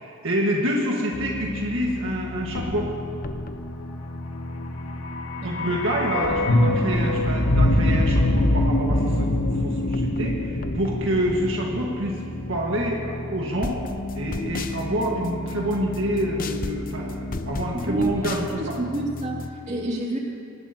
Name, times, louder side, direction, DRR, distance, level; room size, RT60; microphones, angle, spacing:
voice 1, 0.0-2.9 5.4-9.3 9.5-12.2 12.5-13.8 14.2-18.8, right 1 dB, 65° right, -2 dB, 1.8 m, -27 dB
sound 1, 1.1-19.5, left 2 dB, 40° left, 0.6 m, -33 dB
sound 2, 4.8-12.9 13.2-13.3, left 1 dB, 85° left, 1.4 m, -23 dB
voice 2, 5.4-5.8 17.7-18.3 18.6-20.2, right 2 dB, 35° right, -3 dB, 2.7 m, -29 dB
24.0 x 19.5 x 3.0 m, 2.6 s
head